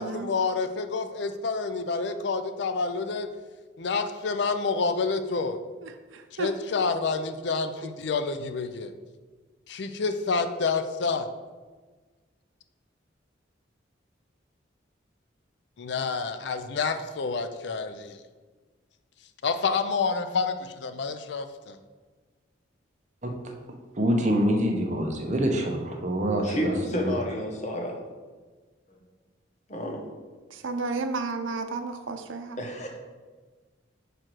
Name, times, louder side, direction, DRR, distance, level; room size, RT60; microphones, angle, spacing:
voice 1, 0.0-3.3 3.8-5.6 6.3-8.9 9.7-11.3 15.8-18.2 19.4-21.8, left 4 dB, 60° left, 9 dB, 0.4 m, -28 dB
voice 2, 5.8-6.5 7.8-7.9 30.5-32.6, right 3 dB, 85° right, 7 dB, 0.6 m, -32 dB
voice 3, 24.0-27.1, equal, 35° right, 2 dB, 0.9 m, -25 dB
voice 4, 26.4-28.0 28.9-29.0 29.7-30.0 32.6-32.9, equal, 35° left, 1 dB, 1.0 m, -31 dB
5.0 x 4.5 x 6.1 m, 1.4 s
head